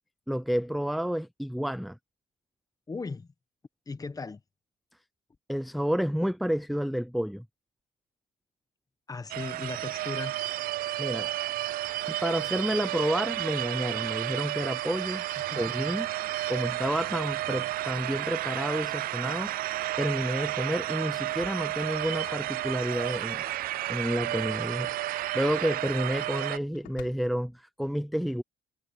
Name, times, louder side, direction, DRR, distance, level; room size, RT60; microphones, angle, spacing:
voice 1, 0.3-2.0 5.5-7.4 11.0-11.3 12.1-15.3 15.6-16.1 16.5-19.5 20.0-23.4 23.9-28.4, equal, ahead, 0.6 m, -30 dB
voice 2, 2.9-3.3 3.9-4.4 9.1-10.3 15.5-15.6, left 4 dB, 20° left, 1.4 m, -37 dB
sound 1, 9.3-26.6, right 15 dB, 60° right, 0.4 m, -32 dB
sound 2, 21.0-23.7 25.3-27.5, left 16 dB, 85° left, 4.9 m, -53 dB
cardioid pair, 110°, 17 cm